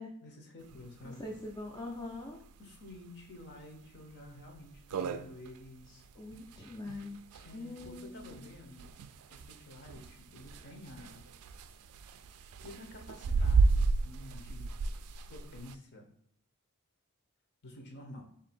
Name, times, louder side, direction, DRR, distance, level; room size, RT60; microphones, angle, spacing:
voice 1, 0.2-1.2 2.6-6.0 7.4-9.0 9.3-11.3 12.4-14.7 15.3-16.1 17.6-18.2, left 1 dB, 50° left, 3 dB, 0.8 m, -50 dB
sound 1, 0.7-0.8 1.1-1.2 1.5-1.6 2.2-2.4 2.9-3.0 3.5-3.6 3.9-4.0 4.5-4.6 4.7-15.7, right 4 dB, 75° right, 0.3 m, -33 dB
voice 2, 1.0-2.4 5.9-8.4, left 2 dB, 20° left, -1 dB, 0.4 m, -43 dB
3.7 x 2.7 x 4.2 m, 0.67 s
head